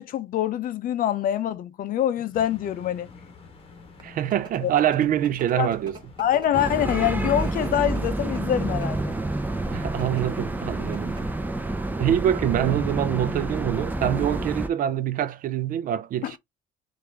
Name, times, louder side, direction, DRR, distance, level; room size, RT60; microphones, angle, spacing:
voice 1, 0.0-3.1 4.6-4.7 5.6-5.7 6.2-9.2 16.2-16.4, left 11 dB, 55° left, 0.5 m, -25 dB
sound 1, 2.3-11.3, left 4 dB, 35° left, 1.3 m, -48 dB
sound 2, 3.7-9.1 9.8-10.2 10.6-10.7 10.9-11.4, right 3 dB, 25° right, 1.5 m, -44 dB
voice 2, 4.0-6.0 9.7-11.2 12.0-16.4, right 11 dB, 55° right, 0.5 m, -25 dB
sound 3, 6.5-14.7, right 2 dB, 10° right, 0.6 m, -28 dB
4.7 x 2.6 x 3.3 m
cardioid pair, 110°, 17 cm